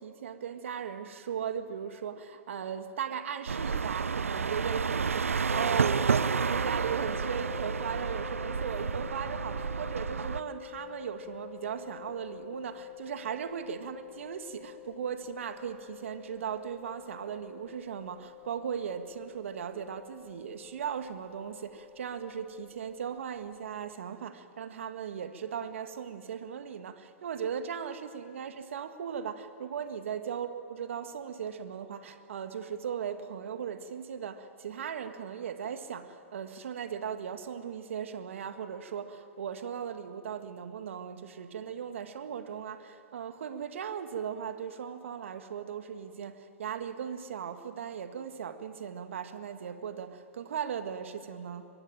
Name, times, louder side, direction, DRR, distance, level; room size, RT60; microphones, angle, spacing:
voice 1, 0.0-51.7, right 8 dB, 70° right, 1.8 m, -38 dB
sound 1, 3.5-10.4, right 5 dB, 85° right, 0.6 m, -30 dB
sound 2, 5.5-23.9, left 22 dB, 50° left, 1.2 m, -47 dB
24.0 x 23.0 x 9.0 m
hypercardioid pair, 115°, 7 cm